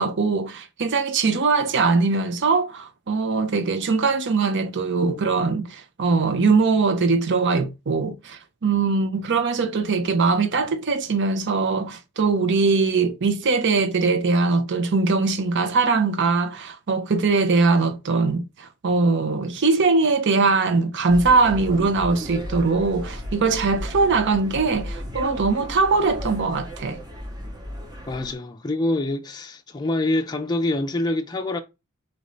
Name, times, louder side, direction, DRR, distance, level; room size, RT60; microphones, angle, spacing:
voice 1, 0.0-27.0, right 4 dB, 55° right, 0.6 m, -21 dB
sound 1, 21.1-28.3, equal, 20° right, 1.0 m, -34 dB
voice 2, 28.1-31.6, left 2 dB, 20° left, 0.5 m, -25 dB
4.1 x 2.6 x 4.9 m
head